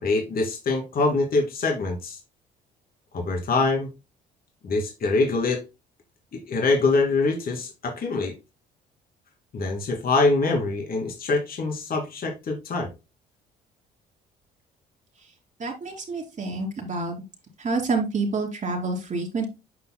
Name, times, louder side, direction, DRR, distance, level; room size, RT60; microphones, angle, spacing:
voice 1, 0.0-2.2 3.1-3.9 4.6-5.6 6.3-8.3 9.5-12.9, left 3 dB, 50° left, 2.5 m, -24 dB
voice 2, 15.6-17.2 17.6-19.4, right 3 dB, 40° right, 2.8 m, -28 dB
9.0 x 6.0 x 2.2 m
supercardioid pair, 65°, 19 cm